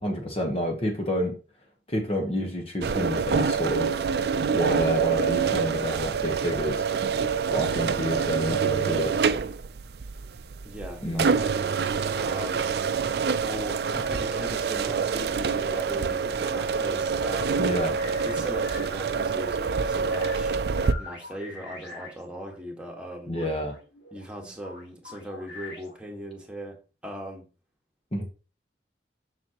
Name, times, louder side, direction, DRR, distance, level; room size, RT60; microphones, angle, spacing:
voice 1, 0.0-1.4 1.9-3.9 4.5-6.8 7.5-9.3 11.0-11.3 17.6-18.0 23.3-23.8 28.1-28.2, equal, 35° left, 1.1 m, -29 dB
sound 1, 2.8-20.9, right 5 dB, 65° right, 0.4 m, -26 dB
voice 2, 10.6-12.7 13.4-17.6 18.2-20.6 21.0-23.3 24.1-26.8 27.0-27.4, equal, 5° right, 1.6 m, -39 dB
sound 2, 16.0-22.6 22.9-26.1, left 3 dB, 80° left, 2.4 m, -46 dB
7.4 x 6.0 x 2.9 m
head